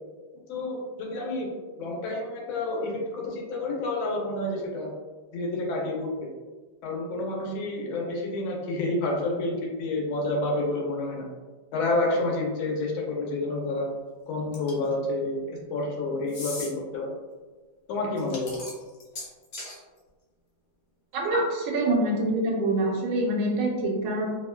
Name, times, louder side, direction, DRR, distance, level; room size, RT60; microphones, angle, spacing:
voice 1, 0.5-1.5 1.8-4.9 5.3-6.3 6.8-9.5 9.8-11.3 11.7-13.9 14.3-17.1 17.9-18.5 21.3-21.4, left 2 dB, 80° left, -1 dB, 1.4 m, -29 dB
sound 1, 14.5-14.9 16.3-16.7 18.2-19.8, left 2 dB, 60° left, 1.3 m, -38 dB
voice 2, 21.7-24.3, right 1 dB, 80° right, -1 dB, 1.5 m, -25 dB
3.5 x 2.1 x 2.2 m, 1.3 s
omnidirectional pair, 2.2 m